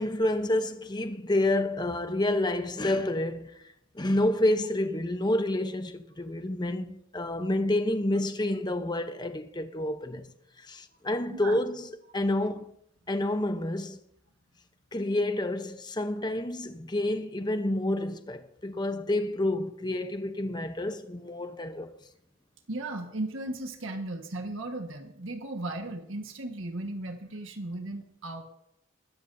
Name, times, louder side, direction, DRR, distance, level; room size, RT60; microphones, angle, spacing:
voice 1, 0.0-3.6 3.9-10.3 10.6-12.7 13.1-14.0 14.9-22.0, left 1 dB, 20° left, 0.8 m, -29 dB
voice 2, 22.7-28.4, right 2 dB, 70° right, 1.5 m, -36 dB
21.0 x 13.0 x 2.7 m
head